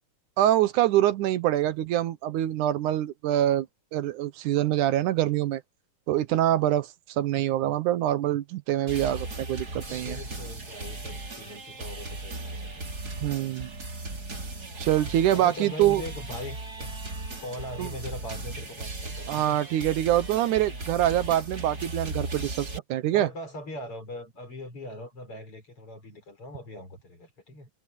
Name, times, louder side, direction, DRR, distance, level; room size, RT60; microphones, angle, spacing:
voice 1, 0.4-3.7 3.9-5.6 6.1-6.9 7.2-10.2 13.2-13.7 14.8-16.0 17.8-17.9 19.3-23.3, right 13 dB, 75° right, 2.3 m, -25 dB
sound 1, 8.9-22.8, right 2 dB, 30° right, 3.7 m, -37 dB
voice 2, 9.7-12.8 15.3-17.0 17.4-19.6 23.1-27.7, left 1 dB, 40° left, 6.4 m, -41 dB
omnidirectional pair, 3.9 m